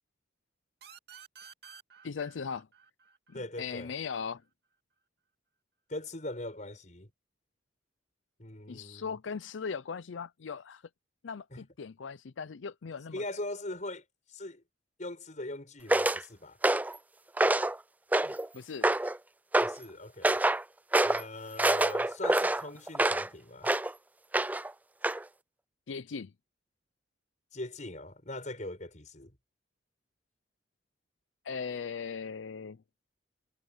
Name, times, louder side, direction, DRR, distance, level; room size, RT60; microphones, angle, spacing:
sound 1, 0.8-4.2, right 6 dB, 60° right, 2.6 m, -53 dB
voice 1, 2.0-2.7 3.3-4.4 8.7-10.8 11.2-13.2 18.2-18.9 25.9-26.3 31.4-32.8, left 5 dB, 85° left, 0.5 m, -39 dB
voice 2, 3.3-3.9 5.9-7.1 8.4-9.2 11.5-11.7 13.1-14.6 15.0-16.6 19.6-20.4 21.0-23.7 27.5-29.4, left 2 dB, 40° left, 5.5 m, -41 dB
sound 2, 15.9-16.2 16.6-17.0 17.4-17.8 18.1-18.5 18.8-19.2 19.5-19.8 20.2-20.6 20.9-21.2 21.6-23.3 23.6-23.9 24.3-24.7 25.0-25.2, right 2 dB, 10° right, 0.4 m, -26 dB
head